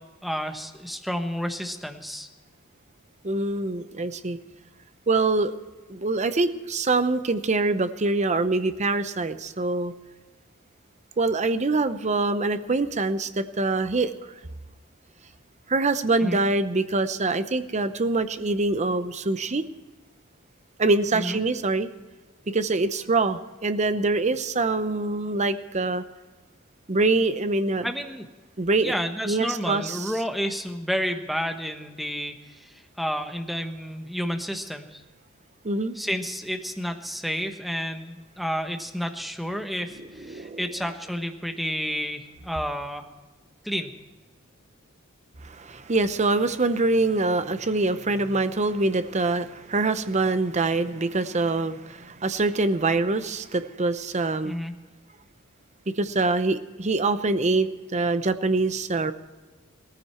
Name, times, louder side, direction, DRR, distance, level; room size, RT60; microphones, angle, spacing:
voice 1, 0.2-2.3 16.2-16.4 21.1-21.4 27.8-28.3 28.8-35.0 35.9-43.1 43.6-43.9 54.4-54.7, equal, ahead, 6 dB, 1.2 m, -30 dB
voice 2, 3.2-4.4 5.1-5.5 5.9-9.9 11.2-14.1 15.7-19.6 20.8-21.9 22.5-26.0 26.9-27.9 28.6-28.9 29.2-30.1 35.6-36.0 40.2-40.7 45.4-54.5 56.0-59.1, right 3 dB, 35° right, 11 dB, 0.8 m, -24 dB
18.0 x 14.5 x 4.4 m, 1.3 s
head